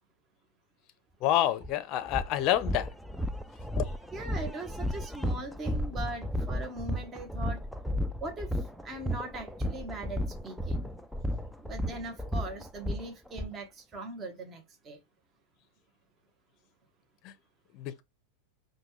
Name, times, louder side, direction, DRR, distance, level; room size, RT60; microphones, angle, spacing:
voice 1, 1.2-2.9 3.8-3.9 17.2-17.3 17.7-18.0, left 12 dB, 40° left, 0.6 m, -28 dB
sound 1, 1.6-1.7 2.1-13.5, equal, ahead, 0.3 m, -33 dB
voice 2, 4.1-7.6 8.2-10.9 11.6-15.0, right 2 dB, 20° right, 1.0 m, -40 dB
5.1 x 2.2 x 3.1 m
supercardioid pair, 150°, 0 cm